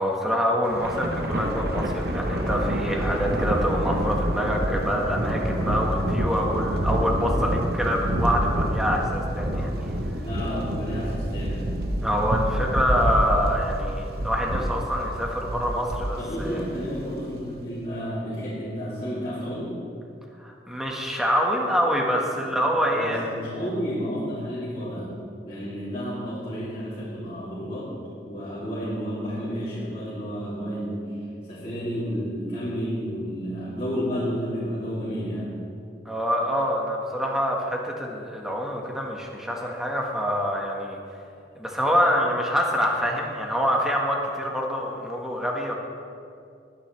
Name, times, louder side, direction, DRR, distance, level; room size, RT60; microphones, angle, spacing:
voice 1, 0.0-9.7 12.0-16.6 20.4-23.3 36.0-41.0 41.6-45.7, equal, 5° right, -1 dB, 1.5 m, -26 dB
Thunder, 0.6-17.2, right 1 dB, 60° right, 1.0 m, -27 dB
voice 2, 10.2-11.8 16.1-19.8 22.9-25.2 25.4-28.0 28.2-31.1 31.5-35.6, equal, 30° left, -11 dB, 3.0 m, -31 dB
20.0 x 10.0 x 3.3 m, 2.5 s
head